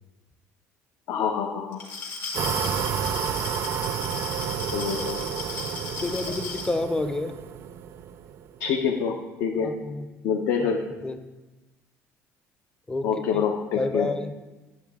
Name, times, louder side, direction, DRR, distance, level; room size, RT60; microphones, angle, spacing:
voice 1, 1.1-1.8 4.7-5.3 8.6-9.7 10.2-10.8 13.0-14.1, left 7 dB, 70° left, 2 dB, 0.7 m, -26 dB
Glass, 1.7-6.8, left 3 dB, 50° left, 1.6 m, -35 dB
sound 1, 2.3-8.6, right 8 dB, 50° right, 0.4 m, -31 dB
voice 2, 6.0-7.3 9.6-10.1 10.6-10.7 11.0-11.2 12.9-13.4 13.8-14.3, left 2 dB, 15° left, 9 dB, 0.5 m, -29 dB
9.9 x 7.5 x 3.5 m, 1.1 s
cardioid pair, 145°, 6 cm